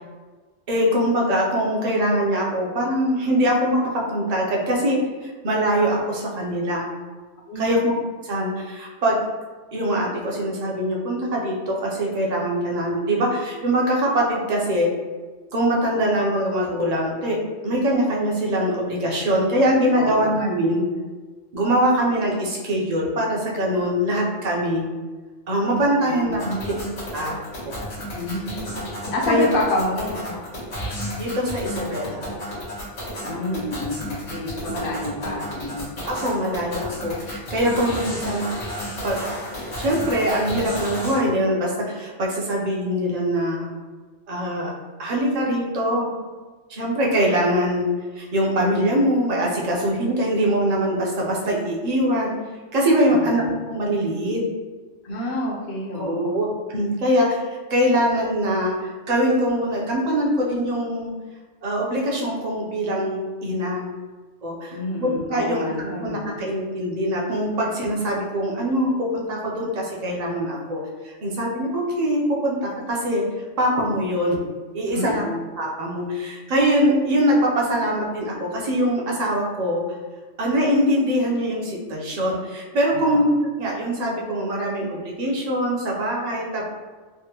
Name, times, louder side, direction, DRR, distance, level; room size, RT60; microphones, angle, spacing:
voice 1, 0.7-6.9 7.6-7.9 8.3-9.2 9.7-14.9 15.5-17.4 17.6-20.9 21.5-24.9 25.5-26.4 27.1-27.3 27.6-27.8 29.3-29.6 31.2-32.2 36.1-38.5 39.0-39.2 39.8-43.7 44.3-44.7 45.0-46.1 46.7-47.9 48.2-52.3 52.7-53.4 53.7-54.4 55.9-57.4 57.7-61.1 61.6-63.9 64.4-70.8 71.0-73.2 73.6-74.4 74.7-75.2 75.6-79.8 80.4-86.7, equal, 45° right, -2 dB, 0.6 m, -23 dB
voice 2, 7.5-7.9 20.0-20.4 26.0-26.8 28.1-28.6 29.1-30.3 33.2-35.9 53.1-53.6 55.0-56.4 64.7-66.4 74.9-75.3 82.9-83.3, left 1 dB, 55° left, -3 dB, 0.8 m, -28 dB
sound 1, 26.3-41.2, equal, 85° left, 1.5 m, -32 dB
3.4 x 2.1 x 2.8 m, 1.4 s
omnidirectional pair, 1.2 m